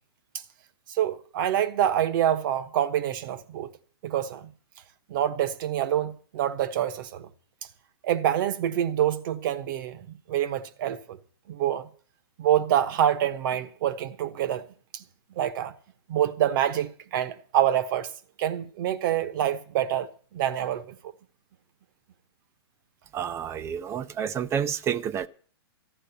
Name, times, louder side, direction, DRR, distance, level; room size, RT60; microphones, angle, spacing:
voice 1, 0.9-3.7 4.0-4.5 5.1-7.3 8.0-11.2 11.5-11.9 12.4-14.6 14.9-15.0 15.4-15.7 16.1-18.1 18.4-21.0, right 11 dB, 50° right, 1.2 m, -26 dB
voice 2, 23.1-25.3, right 8 dB, 20° right, 0.6 m, -29 dB
13.5 x 10.0 x 6.9 m
hypercardioid pair, 140°, 14 cm